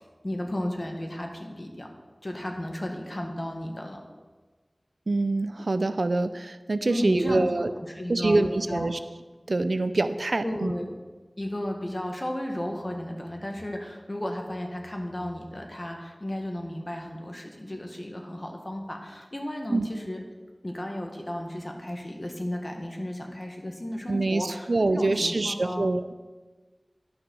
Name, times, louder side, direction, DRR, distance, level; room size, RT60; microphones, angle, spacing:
voice 1, 0.2-1.9 2.2-4.0 6.8-7.5 7.9-8.9 10.4-10.9 11.4-20.2 20.6-25.9, left 1 dB, 40° left, 2 dB, 1.6 m, -34 dB
voice 2, 5.1-7.7 8.1-9.0 9.5-10.7 19.7-19.9 24.1-26.0, right 2 dB, 85° right, 11 dB, 0.5 m, -25 dB
11.0 x 5.9 x 6.3 m, 1.3 s
wide cardioid pair, 40°, 0 cm